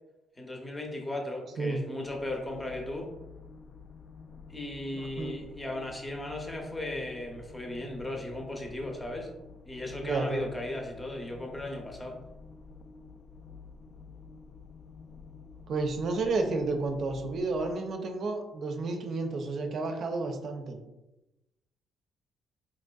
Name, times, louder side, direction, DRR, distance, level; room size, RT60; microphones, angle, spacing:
voice 1, 0.4-3.1 4.5-9.3 9.7-12.2, left 1 dB, 15° left, 1 dB, 0.7 m, -36 dB
sound 1, 2.0-17.7, left 4 dB, 50° left, 0.3 m, -50 dB
voice 2, 5.0-5.3 10.0-10.5 15.7-20.8, right 3 dB, 60° right, 5 dB, 0.5 m, -31 dB
4.0 x 2.6 x 2.3 m, 0.98 s
cardioid pair, 90°, 0 cm